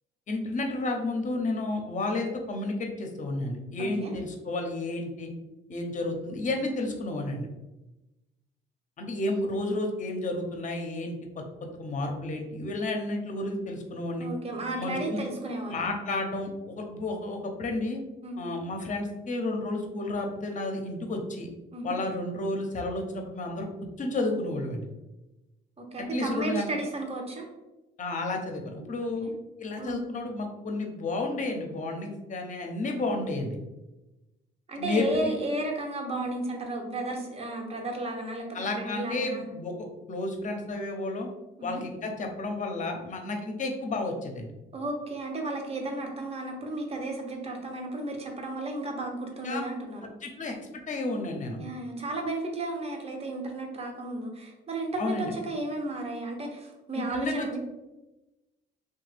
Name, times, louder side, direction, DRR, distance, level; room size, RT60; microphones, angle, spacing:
voice 1, 0.3-5.3 5.7-7.5 9.0-11.2 11.7-14.3 14.8-15.2 15.7-18.0 18.4-21.5 21.8-23.7 24.0-24.8 26.1-26.7 28.0-29.3 29.6-33.6 34.7-35.3 38.5-39.7 40.1-41.3 41.6-44.5 49.4-49.6 50.0-50.5 50.9-51.6 55.0-55.3 56.9-57.6, left 2 dB, 40° left, 3 dB, 0.6 m, -31 dB
voice 2, 3.8-4.1 14.2-15.9 18.2-18.4 21.7-22.0 25.8-27.5 29.0-29.3 29.8-30.0 34.7-39.5 41.6-41.8 44.7-50.0 51.6-57.6, right 2 dB, 30° right, 2 dB, 0.7 m, -33 dB
2.8 x 2.3 x 3.2 m, 1.0 s
cardioid pair, 90°, 20 cm